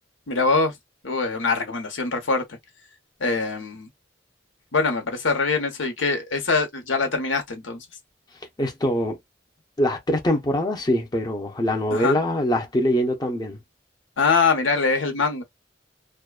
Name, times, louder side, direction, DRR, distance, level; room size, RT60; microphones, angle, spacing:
voice 1, 0.3-0.7 1.0-2.6 3.2-3.9 4.7-7.8 11.9-12.2 14.2-15.4, left 4 dB, 90° left, 0.9 m, -23 dB
voice 2, 8.6-9.2 9.8-13.6, equal, 20° left, 0.6 m, -23 dB
2.4 x 2.2 x 2.3 m
head